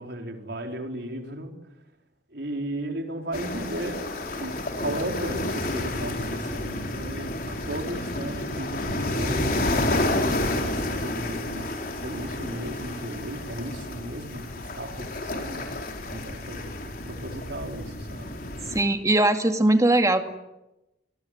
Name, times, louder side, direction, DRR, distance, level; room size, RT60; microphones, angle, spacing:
voice 1, 0.0-1.5 2.3-4.0 4.4-16.7 17.0-18.4, right 1 dB, 70° right, 3 dB, 4.4 m, -35 dB
sound 1, 3.3-18.8, left 1 dB, 50° left, 4.0 m, -30 dB
voice 2, 18.7-20.3, right 1 dB, 20° right, 6 dB, 2.3 m, -20 dB
28.5 x 22.0 x 9.4 m, 0.96 s
head